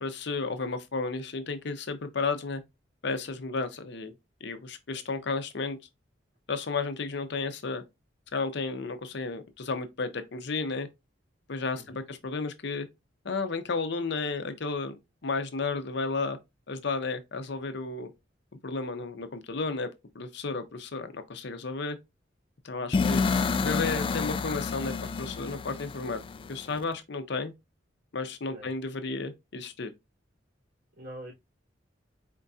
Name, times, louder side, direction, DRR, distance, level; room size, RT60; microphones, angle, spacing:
voice 1, 0.0-2.6 3.0-4.1 4.4-5.8 6.5-7.8 8.3-10.9 11.5-12.9 13.2-15.0 15.2-16.4 16.7-18.1 18.6-19.9 20.1-22.0 22.6-23.3 23.6-26.2 26.5-27.5 28.1-29.9, left 4 dB, 65° left, 0.7 m, -33 dB
sound 1, 22.9-26.8, left 4 dB, 30° left, 0.3 m, -29 dB
voice 2, 31.0-31.3, equal, 50° right, 3.0 m, -44 dB
4.5 x 3.6 x 2.7 m
head